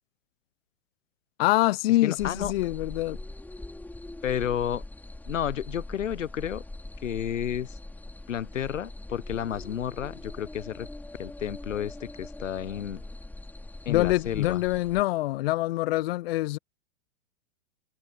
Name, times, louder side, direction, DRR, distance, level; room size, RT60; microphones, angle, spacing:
voice 1, 1.4-3.2 13.9-16.6, left 17 dB, 55° left, 0.5 m, -25 dB
voice 2, 2.0-2.5 4.2-4.8 5.3-6.6 7.0-7.8 8.3-10.9 11.2-13.0 13.8-14.6, left 9 dB, 85° left, 0.8 m, -31 dB
sound 1, 2.2-15.0, left 2 dB, 5° left, 3.8 m, -42 dB
hypercardioid pair, 115°, 37 cm